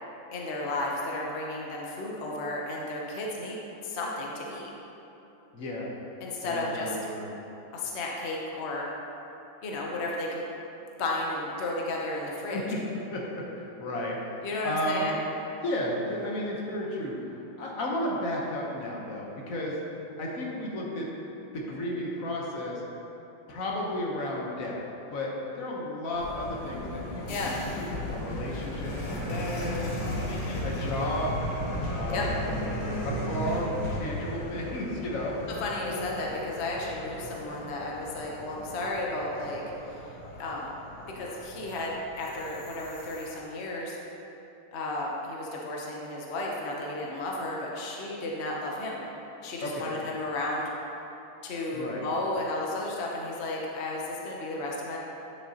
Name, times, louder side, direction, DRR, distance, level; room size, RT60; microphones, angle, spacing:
voice 1, 0.3-4.7 6.2-7.0 7.7-8.9 9.6-10.4 11.0-12.6 14.4-15.2 27.3-27.5 30.3-30.6 32.1-32.3 35.6-39.6 39.9-40.1 40.3-40.7 41.1-44.0 44.7-49.0 49.4-50.7 51.4-55.0, left 2 dB, 70° left, -2 dB, 0.6 m, -33 dB
voice 2, 5.5-5.9 6.4-7.3 12.5-12.8 13.1-15.1 15.6-19.8 20.2-21.1 21.5-22.8 23.5-24.8 25.1-30.3 30.6-31.3 31.9-32.5 33.0-36.0 49.6-49.9 51.7-52.0, left 1 dB, 50° left, -3 dB, 1.1 m, -33 dB
sound 1, 26.1-43.3, equal, 85° left, 2.0 m, -36 dB
9.5 x 6.7 x 2.8 m, 3.0 s
omnidirectional pair, 2.3 m